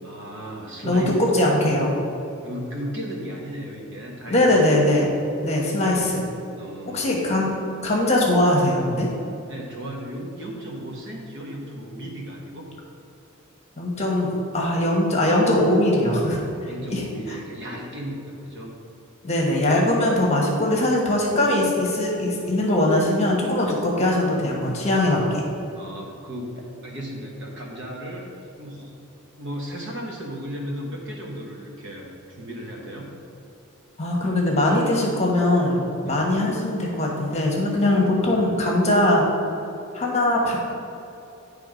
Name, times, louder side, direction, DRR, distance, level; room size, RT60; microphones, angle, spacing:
voice 1, 0.0-1.6 2.4-4.5 6.6-7.2 9.5-12.7 16.6-18.7 23.6-23.8 25.7-28.3 28.6-28.9 29.4-33.1 36.0-36.3, equal, 55° right, -1 dB, 1.2 m, -35 dB
voice 2, 0.8-1.9 4.3-5.2 5.4-6.3 6.9-7.5 7.8-9.1 13.8-14.3 14.5-17.0 17.3-17.4 19.2-25.4 34.0-39.2 39.9-40.6, left 1 dB, 30° left, -2 dB, 1.2 m, -21 dB
9.7 x 3.4 x 5.1 m, 2.8 s
head